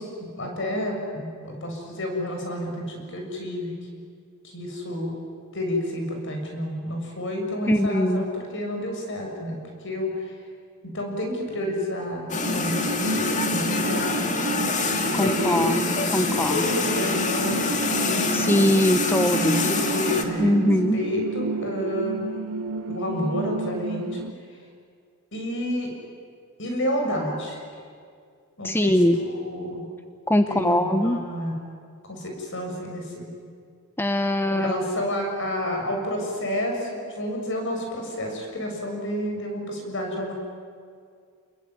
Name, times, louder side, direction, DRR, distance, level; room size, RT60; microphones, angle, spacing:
voice 1, 0.0-4.0 4.4-5.1 5.5-9.6 9.8-10.3 10.8-14.2 15.0-15.7 16.5-18.5 19.3-22.3 22.9-24.3 25.3-25.9 26.6-27.6 28.6-29.8 30.5-31.5 32.1-33.3 34.5-40.3, left 1 dB, 55° left, 2 dB, 6.8 m, -30 dB
voice 2, 7.7-8.2 15.2-16.6 18.3-19.7 20.4-21.0 28.6-29.2 30.3-31.2 34.0-35.0, left 1 dB, 10° left, 8 dB, 0.8 m, -22 dB
sound 1, 12.3-20.2, left 3 dB, 35° left, 2.2 m, -26 dB
sound 2, 12.4-24.3, right 3 dB, 75° right, 0.7 m, -31 dB
29.5 x 21.5 x 9.6 m, 2.2 s
head